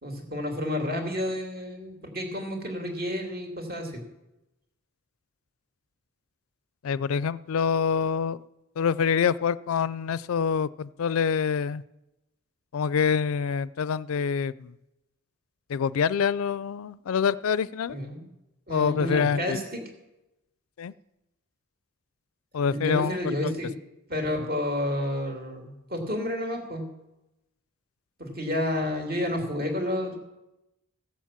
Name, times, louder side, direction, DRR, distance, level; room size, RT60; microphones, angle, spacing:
voice 1, 0.0-4.0 17.9-18.2 18.7-19.8 22.7-23.7 24.1-26.9 28.2-30.2, left 1 dB, 45° right, 2 dB, 2.5 m, -30 dB
voice 2, 6.8-8.4 8.8-11.8 12.7-14.7 15.7-18.0 18.7-19.6 20.8-20.9 22.5-23.2 23.4-23.5, left 6 dB, 80° left, 19 dB, 0.4 m, -26 dB
15.0 x 7.3 x 7.4 m, 0.95 s
head